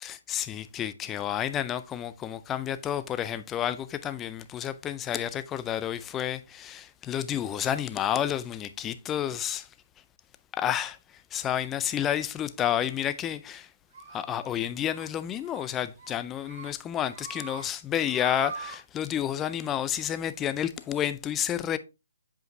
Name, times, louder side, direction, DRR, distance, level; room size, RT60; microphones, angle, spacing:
voice 1, 0.0-9.7 10.5-11.0 11.3-13.7 14.1-21.8, left 10 dB, 15° left, 0.4 m, -30 dB
sound 1, 13.9-14.5 14.9-15.1 15.4-15.7 16.0-16.7 17.0-17.6 18.0-18.8, right 6 dB, 45° right, 1.7 m, -42 dB
7.8 x 4.9 x 2.6 m
hypercardioid pair, 160°, 0 cm